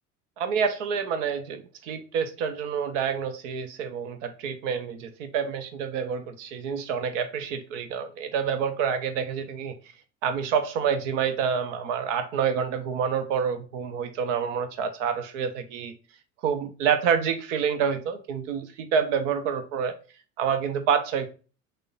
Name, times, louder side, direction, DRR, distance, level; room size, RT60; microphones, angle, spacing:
voice 1, 0.4-9.7 10.2-15.9 16.4-19.9 20.4-21.3, right 7 dB, 55° right, 0.7 m, -28 dB
6.4 x 2.2 x 3.7 m
figure-of-eight pair, 70°, 44 cm